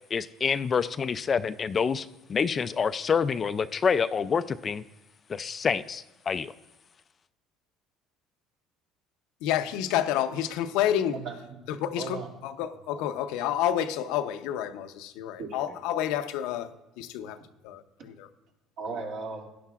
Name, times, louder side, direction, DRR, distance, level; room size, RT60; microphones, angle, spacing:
voice 1, 0.1-4.8 5.3-6.5, left 6 dB, 30° left, 13 dB, 0.3 m, -27 dB
voice 2, 9.4-11.2 11.7-16.7 17.0-17.4 17.6-18.3, left 11 dB, 80° left, 9 dB, 0.6 m, -29 dB
voice 3, 11.1-11.7 12.0-12.3 12.9-13.1 15.4-15.7 18.8-19.5, right 4 dB, 65° right, 0 dB, 2.2 m, -37 dB
17.0 x 10.5 x 2.4 m, 1.1 s
cardioid pair, 120°, 0 cm